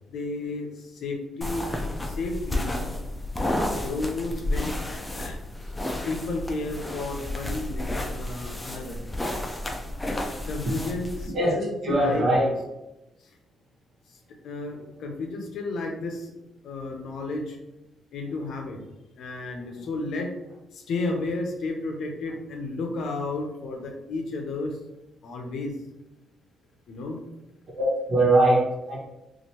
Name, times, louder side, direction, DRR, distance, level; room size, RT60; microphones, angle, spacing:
voice 1, 0.1-0.7 0.9-1.6 2.0-2.8 3.8-4.8 5.2-5.4 6.0-9.0 10.5-12.5 14.4-16.3 16.6-17.6 18.1-18.8 19.2-20.3 20.7-24.8 25.2-25.7 26.9-27.2, left 3 dB, 70° left, 3 dB, 0.6 m, -32 dB
sound 1, 1.4-11.3, left 1 dB, 15° left, 0.5 m, -31 dB
voice 2, 11.8-12.5 19.8-19.9 27.7-29.0, right 1 dB, 55° right, -4 dB, 1.3 m, -21 dB
2.9 x 2.5 x 2.8 m, 0.93 s
cardioid pair, 90°, 0 cm